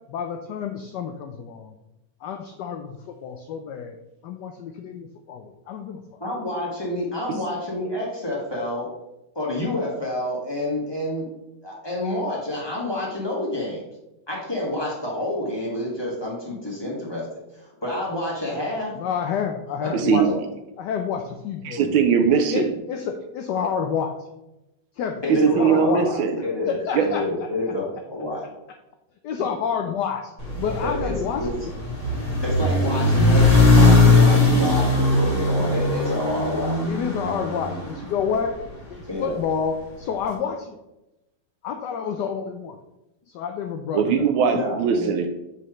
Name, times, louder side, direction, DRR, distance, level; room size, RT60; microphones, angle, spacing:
voice 1, 0.1-1.7 2.2-4.0 4.2-6.2 18.9-20.3 20.8-21.9 22.3-24.2 25.0-26.1 26.7-27.2 29.2-30.3 30.6-31.7 36.9-38.5 38.9-40.8 41.6-42.8 43.3-44.2, left 7 dB, 80° left, 5 dB, 0.9 m, -29 dB
voice 2, 6.2-8.9 9.3-11.3 11.6-13.8 14.3-17.3 17.5-18.9 19.8-20.3 25.2-28.4 30.8-31.1 31.4-31.5 32.4-36.8 39.1-39.3 44.5-45.1, left 1 dB, 15° left, -5 dB, 1.5 m, -28 dB
voice 3, 19.9-20.3 21.6-22.7 25.3-26.4 26.9-27.1 43.9-45.3, right 7 dB, 75° right, 7 dB, 1.3 m, -20 dB
sound 1, 30.4-38.7, left 2 dB, 35° left, 1.9 m, -19 dB
7.1 x 4.9 x 3.0 m, 0.94 s
omnidirectional pair, 2.4 m